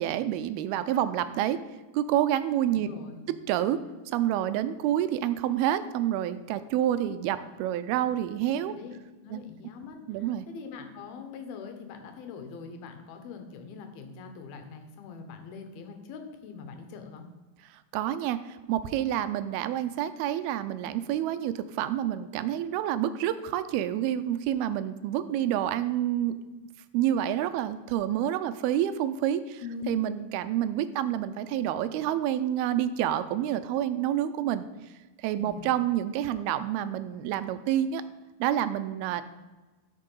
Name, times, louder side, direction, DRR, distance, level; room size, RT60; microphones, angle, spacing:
voice 1, 0.0-1.6 1.9-2.9 3.5-3.8 4.1-8.7 9.3-9.4 10.1-10.5 17.9-26.4 26.9-34.6 35.2-38.0 38.4-39.2, right 11 dB, 85° right, 12 dB, 2.5 m, -28 dB
voice 2, 2.7-3.2 8.7-17.3 29.6-29.9 35.3-35.8, left 5 dB, 75° left, 6 dB, 3.0 m, -43 dB
13.0 x 6.6 x 5.4 m, 1.2 s
omnidirectional pair, 4.4 m